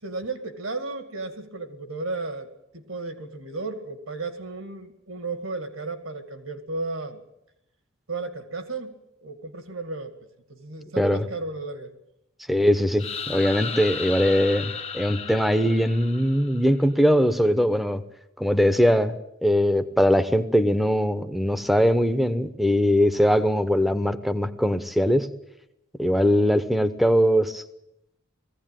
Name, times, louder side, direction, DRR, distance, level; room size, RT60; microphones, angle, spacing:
voice 1, 0.0-2.5 2.7-7.2 8.1-10.1 10.5-11.9, right 3 dB, 75° right, 8 dB, 2.2 m, -34 dB
voice 2, 11.0-11.3 12.5-18.0 18.4-19.2 19.4-25.3 26.0-27.6, equal, ahead, 11 dB, 0.9 m, -21 dB
sound 1, 13.0-16.8, left 6 dB, 30° left, 0.9 m, -34 dB
19.0 x 16.0 x 9.1 m, 0.85 s
head